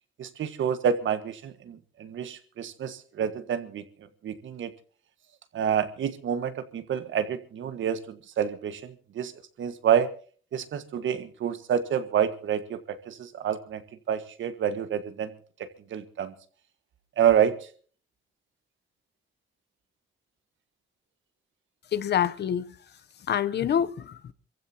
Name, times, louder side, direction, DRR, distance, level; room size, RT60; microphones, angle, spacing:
voice 1, 0.2-3.8 4.2-4.7 5.5-9.3 9.6-10.1 10.5-13.8 14.1-15.3 15.9-16.3 17.2-17.5, right 8 dB, 70° right, 1.7 m, -28 dB
voice 2, 21.9-22.7 23.3-24.3, left 9 dB, 55° left, 0.9 m, -26 dB
28.0 x 15.5 x 2.9 m
wide cardioid pair, 175°, 20 cm